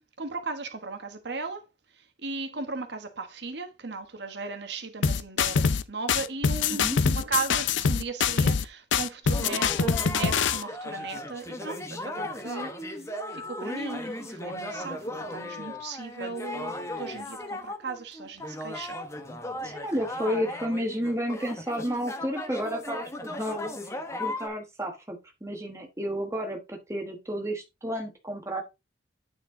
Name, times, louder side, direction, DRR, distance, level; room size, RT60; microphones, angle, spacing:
voice 1, 0.0-1.6 1.9-13.0 13.3-19.0, right 4 dB, 65° right, 1.2 m, -36 dB
sound 1, 5.0-5.8 6.1-8.6 8.9-10.6, left 6 dB, 80° left, 0.5 m, -24 dB
sound 2, 9.3-24.5, left 1 dB, 15° left, 0.9 m, -36 dB
voice 2, 19.6-23.7 24.2-28.6, equal, 15° right, 1.3 m, -32 dB
9.1 x 4.4 x 3.7 m
head